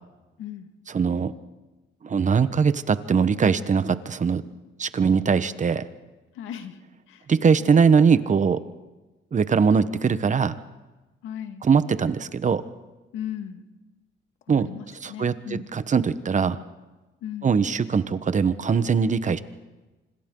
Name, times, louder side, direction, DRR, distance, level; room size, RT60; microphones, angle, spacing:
voice 1, 0.4-0.7 6.3-6.8 7.1-7.3 11.2-11.6 13.1-13.6 14.5-15.7 17.2-17.5, left 10 dB, 90° left, 7 dB, 1.9 m, -36 dB
voice 2, 0.9-1.3 2.0-4.4 4.8-5.8 7.3-8.6 9.3-10.6 11.6-12.6 14.5-14.7 15.0-16.6 17.4-19.4, right 6 dB, 40° right, 13 dB, 1.1 m, -21 dB
26.5 x 26.0 x 3.9 m, 1.2 s
cardioid pair, 90°, 20 cm